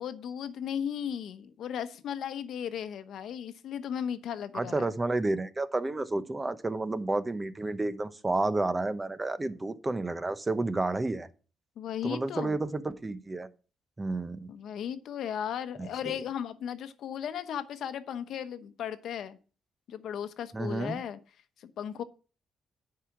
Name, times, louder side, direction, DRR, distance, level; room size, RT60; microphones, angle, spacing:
voice 1, 0.0-4.9 11.8-12.6 14.5-19.4 19.9-21.2 21.6-22.0, left 9 dB, 70° left, 0.9 m, -36 dB
voice 2, 4.5-11.3 12.0-13.5 14.0-14.5 15.8-15.9 20.5-21.0, right 2 dB, 20° right, 0.8 m, -30 dB
9.7 x 4.9 x 5.9 m
cardioid pair, 90°, 0 cm